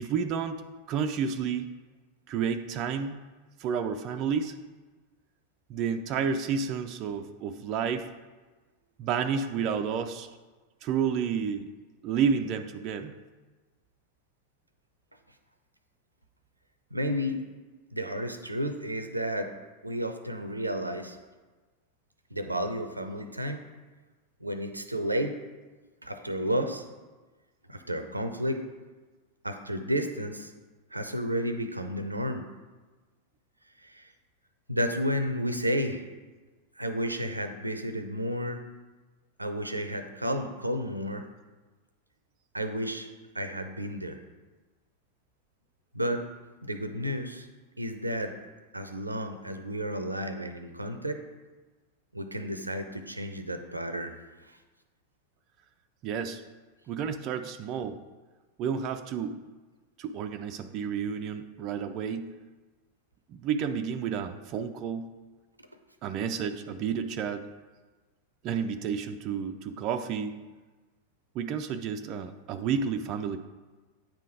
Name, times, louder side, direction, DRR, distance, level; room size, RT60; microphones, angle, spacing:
voice 1, 0.0-1.7 2.3-3.2 3.6-4.5 5.7-8.1 9.0-10.3 10.8-11.7 12.0-13.1 56.0-56.4 56.9-58.0 58.6-59.3 60.0-62.3 63.3-65.1 66.0-67.4 68.4-70.4 71.3-73.4, right 6 dB, 35° right, 7 dB, 0.4 m, -30 dB
voice 2, 16.9-17.4 17.9-19.5 19.8-21.2 22.3-23.6 24.4-25.4 26.0-26.8 27.7-28.6 29.4-30.5 30.9-32.4 33.8-34.1 34.7-36.0 36.8-38.6 39.4-41.2 42.5-43.1 43.3-44.2 45.9-46.3 46.6-47.5 47.8-48.3 48.7-51.2 52.1-54.1 54.5-54.6, equal, 85° right, 8 dB, 0.6 m, -32 dB
9.0 x 3.7 x 4.9 m, 1.3 s
figure-of-eight pair, 90°, 0 cm